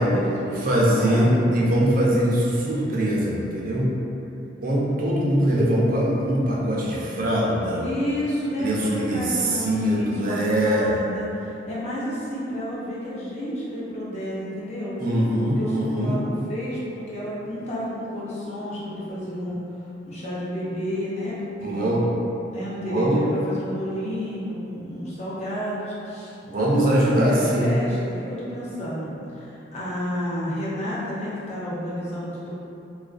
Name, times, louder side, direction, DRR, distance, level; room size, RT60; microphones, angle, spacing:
voice 1, 0.0-1.4 7.8-14.9 15.6-19.6 20.1-21.4 21.6-21.9 22.5-32.5, equal, 35° left, -9 dB, 0.5 m, -31 dB
voice 2, 0.6-3.9 4.6-7.9 8.6-10.9 15.0-16.1 21.6-22.1 22.9-23.2 26.4-27.7, right 1 dB, 45° right, -5 dB, 0.4 m, -22 dB
2.3 x 2.2 x 2.3 m, 2.8 s
head